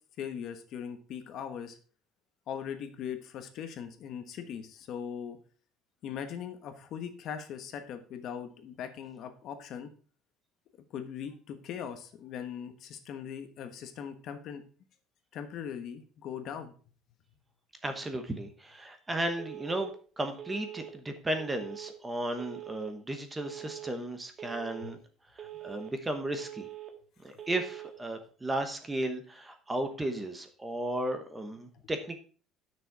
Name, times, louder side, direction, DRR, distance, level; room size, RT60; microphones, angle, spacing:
voice 1, 0.2-1.8 2.5-5.4 6.0-9.9 10.9-14.6 15.3-16.7 24.8-24.9, left 8 dB, 45° left, 8 dB, 1.2 m, -40 dB
voice 2, 17.8-25.0 25.3-26.7 27.2-32.2, right 1 dB, 10° right, 7 dB, 1.0 m, -35 dB
Telephone, 19.4-19.9 20.4-20.9 21.4-21.9 22.4-22.9 23.4-23.9 24.4-24.9 25.4-25.9 26.4-26.9 27.4-27.9, right 13 dB, 30° right, 1.4 m, -43 dB
10.0 x 6.4 x 4.7 m, 0.40 s
cardioid pair, 165°, 0 cm